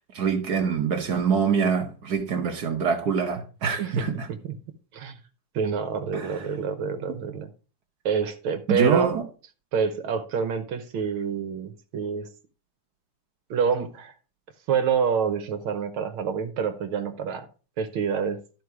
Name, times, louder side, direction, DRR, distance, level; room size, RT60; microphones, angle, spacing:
voice 1, 0.1-4.3 6.1-6.5 7.1-7.2 8.7-9.2, right 6 dB, 55° right, 1.4 m, -25 dB
voice 2, 5.5-7.5 8.0-9.2 9.7-12.3 13.5-14.1 14.7-17.5 17.8-18.4, right 6 dB, 70° right, 1.7 m, -27 dB
13.0 x 4.7 x 4.7 m
omnidirectional pair, 2.4 m